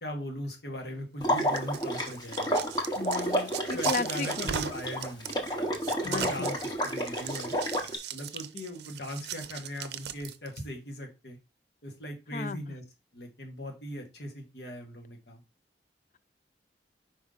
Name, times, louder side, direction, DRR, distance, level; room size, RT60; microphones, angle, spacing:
voice 1, 0.0-2.5 3.7-5.4 6.0-7.6 8.1-11.4 11.8-12.8 13.1-15.4, equal, 70° left, 1.6 m, -39 dB
Water / Liquid, 1.2-8.0, equal, 25° left, 1.0 m, -30 dB
sound 1, 1.2-10.6, right 9 dB, 70° right, 0.5 m, -39 dB
voice 2, 3.0-4.5 6.0-6.5 12.3-12.6, left 4 dB, 45° left, 0.3 m, -35 dB
5.1 x 4.9 x 3.9 m
head